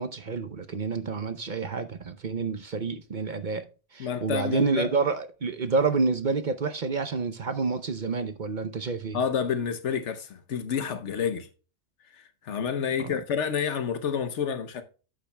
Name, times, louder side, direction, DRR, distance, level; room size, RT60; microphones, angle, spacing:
voice 1, 0.0-9.2 13.0-13.2, right 4 dB, 45° right, 0.7 m, -29 dB
voice 2, 4.0-4.9 9.1-11.5 12.2-14.8, left 7 dB, 80° left, 1.1 m, -29 dB
11.0 x 8.4 x 2.2 m
omnidirectional pair, 1.2 m